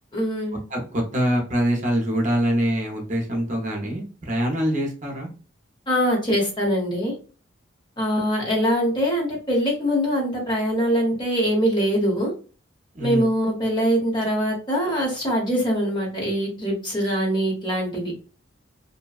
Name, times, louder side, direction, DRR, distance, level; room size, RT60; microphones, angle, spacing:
voice 1, 0.1-0.6 5.9-7.1 8.0-12.3 13.0-18.1, equal, 25° left, -2 dB, 0.9 m, -23 dB
voice 2, 0.7-5.3 13.0-13.3, equal, 40° right, 1 dB, 0.7 m, -24 dB
2.6 x 2.2 x 2.3 m, 0.38 s
head